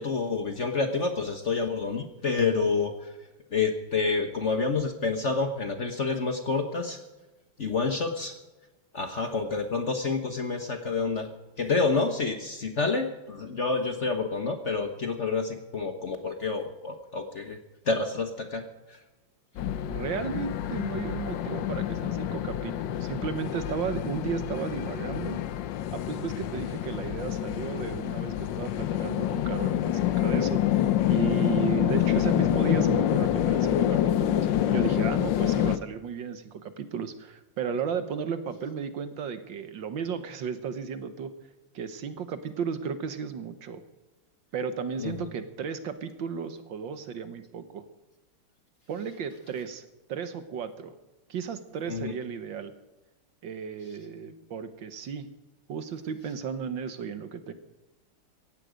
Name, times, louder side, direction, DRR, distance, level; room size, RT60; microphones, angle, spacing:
voice 1, 0.0-3.0 3.5-7.0 7.6-8.4 8.9-11.3 11.6-17.6 17.9-19.0 45.0-45.1 51.9-52.1, left 4 dB, 40° left, 6 dB, 1.2 m, -28 dB
sound 1, 19.6-35.8, left 11 dB, 65° left, 1.3 m, -27 dB
voice 2, 19.9-25.4 25.9-41.3 41.7-43.8 44.5-47.8 48.9-50.9 51.3-52.7 53.4-55.3 55.7-57.5, right 7 dB, 65° right, 10 dB, 1.6 m, -34 dB
17.5 x 15.0 x 5.1 m, 1.1 s
omnidirectional pair, 2.4 m